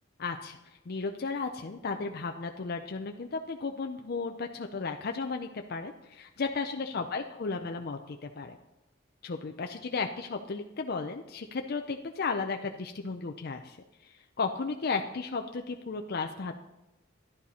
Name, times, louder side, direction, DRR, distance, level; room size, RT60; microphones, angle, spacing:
voice 1, 0.2-0.6 0.9-8.6 9.2-13.8 14.0-16.6, left 4 dB, 55° left, 5 dB, 0.5 m, -34 dB
11.0 x 11.0 x 4.2 m, 0.96 s
head